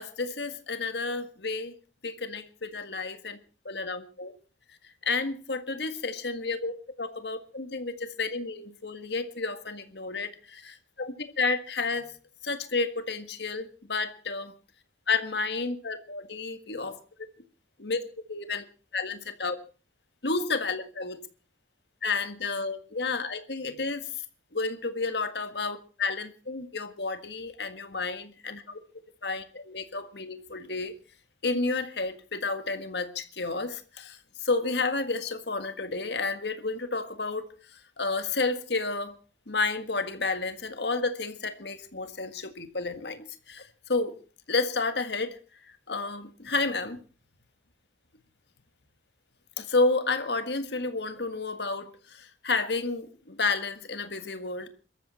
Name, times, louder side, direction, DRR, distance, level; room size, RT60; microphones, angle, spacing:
voice 1, 0.0-1.7 2.0-3.4 3.7-4.3 5.0-12.1 12.4-14.5 15.1-17.0 17.8-18.0 18.3-18.7 18.9-19.6 20.2-21.2 22.0-24.1 24.5-28.8 29.2-30.9 31.4-37.5 37.7-39.1 39.5-44.2 44.5-45.4 45.6-47.0 49.6-54.7, left 3 dB, 65° left, 9 dB, 1.8 m, -31 dB
23.0 x 13.5 x 4.3 m, 0.37 s
head